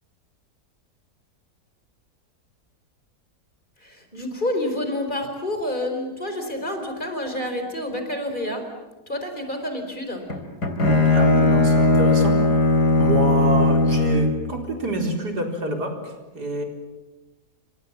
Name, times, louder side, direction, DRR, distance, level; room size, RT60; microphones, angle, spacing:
voice 1, 3.8-8.7 9.1-10.2, left 1 dB, 30° left, 5 dB, 4.8 m, -28 dB
Bowed string instrument, 10.3-14.4, left 2 dB, 80° left, 3.8 m, -18 dB
voice 2, 11.1-12.4 13.0-16.6, right 1 dB, 80° right, 3 dB, 4.8 m, -27 dB
29.5 x 26.5 x 7.4 m, 1.1 s
omnidirectional pair, 1.7 m